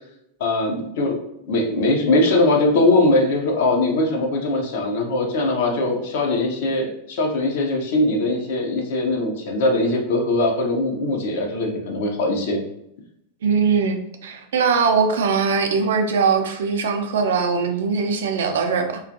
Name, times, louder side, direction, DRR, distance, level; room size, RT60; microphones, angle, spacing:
voice 1, 0.4-1.2 1.5-12.6, left 2 dB, 55° left, 1 dB, 0.6 m, -21 dB
voice 2, 13.4-19.0, right 5 dB, 60° right, 5 dB, 0.4 m, -21 dB
2.4 x 2.3 x 2.6 m, 0.77 s
figure-of-eight pair, 90°, 0 cm